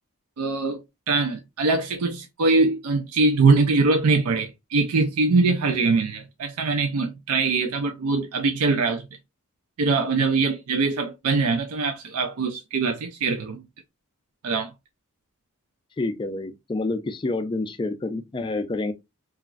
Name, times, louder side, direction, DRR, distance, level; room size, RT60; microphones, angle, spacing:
voice 1, 0.4-9.0 9.8-13.6 14.4-14.7, right 3 dB, 80° right, 0.4 m, -22 dB
voice 2, 16.0-18.9, left 2 dB, 20° left, 0.3 m, -28 dB
2.9 x 2.4 x 2.3 m
head